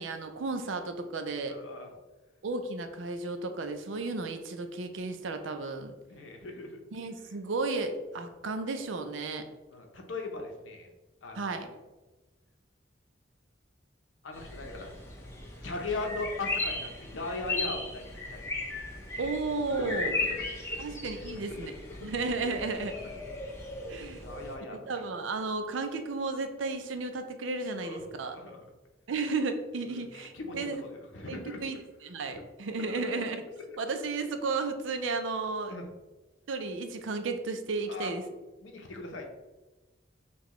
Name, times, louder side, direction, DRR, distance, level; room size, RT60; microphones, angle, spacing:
voice 1, 0.0-1.6 2.4-5.9 6.9-9.5 11.3-11.7 19.2-20.1 20.8-21.7 22.0-22.9 23.9-24.2 24.7-28.4 29.1-30.8 31.3-33.4 33.8-35.7 36.5-38.2, right 3 dB, 90° right, 8 dB, 0.5 m, -33 dB
voice 2, 1.5-1.9 6.1-6.8 9.7-10.9 11.2-11.6 14.2-14.9 15.6-18.4 19.7-20.8 21.2-22.1 22.4-22.5 23.0-23.1 24.2-25.0 27.8-28.6 29.9-31.6 32.3-32.4 32.9-33.0 33.5-33.8 35.7-35.8 37.9-38.1 38.6-39.3, left 2 dB, 85° left, 3 dB, 0.7 m, -39 dB
sound 1, 14.3-24.5, left 2 dB, 15° left, 0.7 m, -37 dB
5.8 x 2.3 x 3.0 m, 1.1 s
head